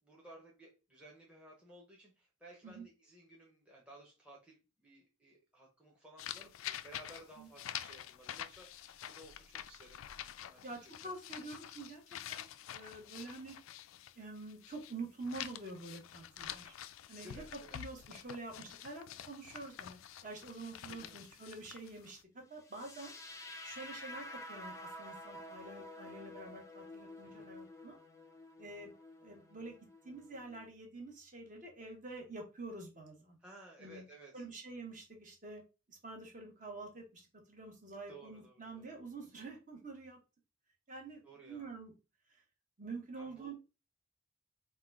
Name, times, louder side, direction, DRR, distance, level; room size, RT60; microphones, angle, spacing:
voice 1, 0.0-10.0 10.4-10.7 11.0-11.1 17.2-17.8 20.8-21.2 27.2-27.5 33.4-34.4 38.1-38.9 41.2-41.7 43.2-43.5, right 1 dB, 5° right, -3 dB, 0.9 m, -57 dB
sound 1, 6.2-14.9 15.2-22.2, left 11 dB, 75° left, 0.3 m, -47 dB
voice 2, 10.6-12.0 12.3-13.5 14.2-16.7 17.1-17.4 17.7-23.2 23.6-28.0 28.6-28.9 29.2-29.8 30.0-33.4 33.8-34.0 34.3-35.6 35.9-40.2 40.9-41.9 42.3-42.4 42.8-43.5, right 3 dB, 40° right, 1 dB, 1.2 m, -47 dB
sound 2, 22.6-30.7, left 1 dB, 15° left, 0.5 m, -50 dB
3.7 x 2.3 x 4.6 m, 0.29 s
head